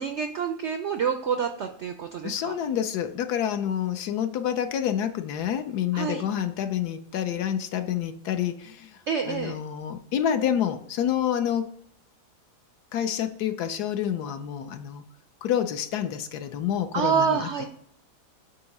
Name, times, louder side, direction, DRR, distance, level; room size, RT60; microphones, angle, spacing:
voice 1, 0.0-2.5 5.9-6.2 9.1-9.6 16.9-17.7, right 6 dB, 75° right, 6 dB, 0.6 m, -27 dB
voice 2, 2.2-9.0 9.3-11.7 12.9-15.0 15.4-17.7, left 9 dB, 75° left, 9 dB, 1.2 m, -28 dB
8.2 x 2.9 x 5.3 m, 0.71 s
omnidirectional pair, 1.8 m